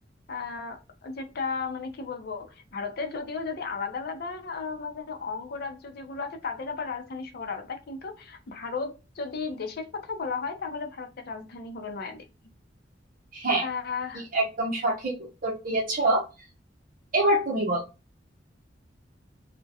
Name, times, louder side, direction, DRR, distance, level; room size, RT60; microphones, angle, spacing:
voice 1, 0.3-12.2 13.6-14.2, left 4 dB, 55° left, 0.5 m, -34 dB
voice 2, 13.3-13.7 14.3-16.2 17.1-17.8, right 2 dB, 50° right, 0.7 m, -25 dB
2.3 x 2.1 x 2.6 m
head